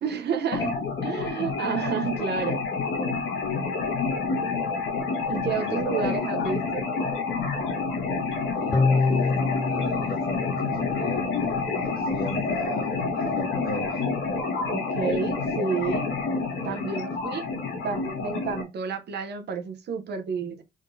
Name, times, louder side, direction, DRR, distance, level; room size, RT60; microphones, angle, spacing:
voice 1, 0.0-0.8 1.0-2.6 5.3-6.8 14.7-16.1 16.6-17.5 17.8-20.6, right 6 dB, 60° right, 0.7 m, -30 dB
sound 1, 0.5-18.6, left 4 dB, 75° left, 1.4 m, -28 dB
voice 2, 5.5-6.6 8.4-14.0, left 3 dB, 50° left, 1.4 m, -37 dB
sound 2, 8.7-12.0 12.4-12.5, left 4 dB, 20° left, 0.3 m, -27 dB
3.7 x 3.7 x 2.6 m
cardioid pair, 90°, 20 cm